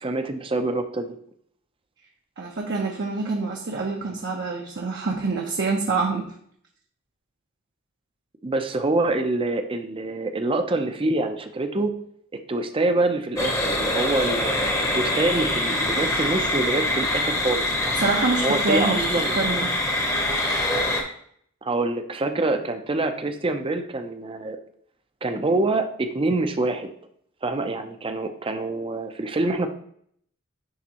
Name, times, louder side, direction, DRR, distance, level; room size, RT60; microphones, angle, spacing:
voice 1, 0.0-1.2 8.4-11.9 12.5-18.0 18.4-19.6 21.6-24.6 25.2-26.9 27.4-29.7, right 2 dB, 25° right, 7 dB, 0.6 m, -26 dB
voice 2, 2.4-6.3 18.0-19.7, right 3 dB, 55° right, 0 dB, 0.8 m, -26 dB
sound 1, 13.4-21.0, left 1 dB, 15° left, 0.9 m, -24 dB
10.5 x 3.6 x 2.9 m, 0.65 s
head